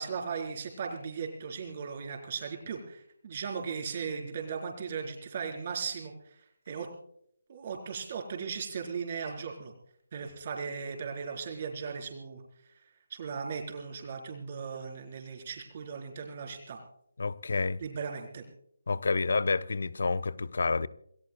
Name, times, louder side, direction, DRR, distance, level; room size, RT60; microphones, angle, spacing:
voice 1, 0.0-6.3 6.7-6.9 7.5-9.7 10.1-12.4 13.1-16.8 17.8-18.4, right 6 dB, 40° right, 4.3 m, -37 dB
voice 2, 17.2-17.8 18.9-20.9, left 4 dB, 60° left, 0.8 m, -29 dB
28.0 x 19.0 x 2.3 m
figure-of-eight pair, 150°, 0 cm